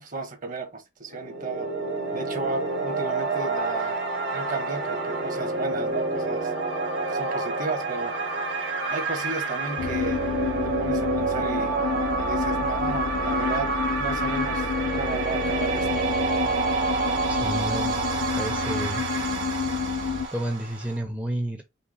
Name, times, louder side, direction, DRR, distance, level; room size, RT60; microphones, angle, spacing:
voice 1, 0.0-1.7 2.1-4.0 4.3-6.5 7.1-8.2 8.9-10.2 10.6-11.8 12.2-16.5, right 3 dB, 45° right, 1.1 m, -34 dB
sound 1, 1.1-21.0, right 3 dB, 70° right, 2.2 m, -28 dB
sound 2, 9.8-20.3, left 6 dB, 80° left, 0.5 m, -30 dB
voice 2, 17.3-18.0 18.4-19.0 19.5-19.8 20.3-21.6, right 1 dB, 5° right, 0.5 m, -31 dB
5.5 x 2.1 x 4.1 m
head